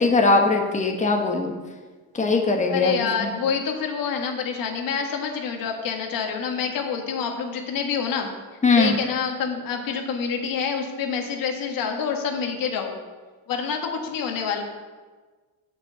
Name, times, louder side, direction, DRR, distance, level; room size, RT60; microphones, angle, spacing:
voice 1, 0.0-1.5 2.2-2.9 3.2-3.3 8.6-9.0, left 3 dB, 20° left, 3 dB, 1.3 m, -20 dB
voice 2, 2.7-8.3 8.7-12.9 13.5-14.6, left 6 dB, 55° left, 3 dB, 1.8 m, -27 dB
7.9 x 6.4 x 8.1 m, 1.4 s
cardioid pair, 150°, 40 cm